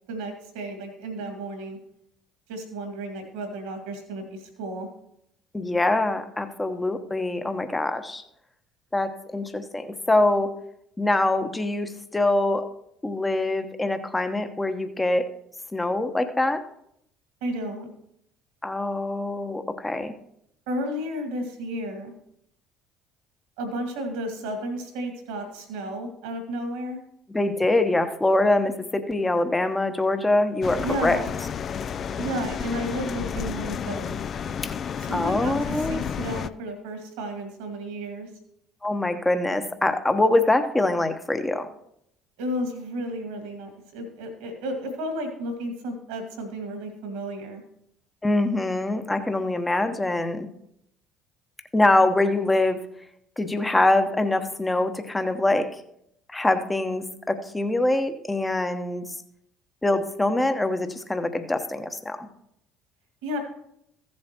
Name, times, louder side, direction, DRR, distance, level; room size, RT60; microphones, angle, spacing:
voice 1, 0.1-1.8 2.5-4.9 17.4-17.9 20.7-22.1 23.6-27.0 30.8-31.3 32.2-34.2 35.0-38.3 42.4-47.6 63.2-63.4, right 1 dB, 75° right, 5 dB, 2.0 m, -32 dB
voice 2, 5.5-8.2 8.9-10.5 11.0-12.7 13.0-15.3 15.7-16.6 18.6-20.1 27.3-31.2 34.6-34.7 35.1-36.0 38.8-41.7 48.2-50.5 51.7-52.8 53.4-55.7 56.3-59.0 59.8-62.3, left 2 dB, 15° left, 8 dB, 1.0 m, -24 dB
sound 1, 30.6-36.5, left 7 dB, 45° left, 0.4 m, -31 dB
15.0 x 7.5 x 3.0 m, 0.75 s
hypercardioid pair, 60°, 0 cm